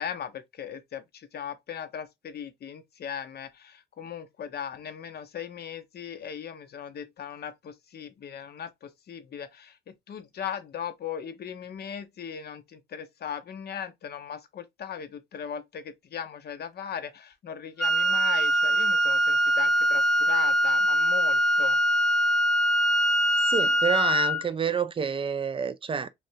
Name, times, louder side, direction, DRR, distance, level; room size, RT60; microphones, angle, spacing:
voice 1, 0.0-21.8, left 8 dB, 55° left, 0.7 m, -38 dB
Wind instrument woodwind instrument, 17.8-24.4, equal, ahead, 0.8 m, -23 dB
voice 2, 23.5-26.1, right 6 dB, 25° right, 0.4 m, -28 dB
3.2 x 2.5 x 2.7 m
cardioid pair, 90°, 20 cm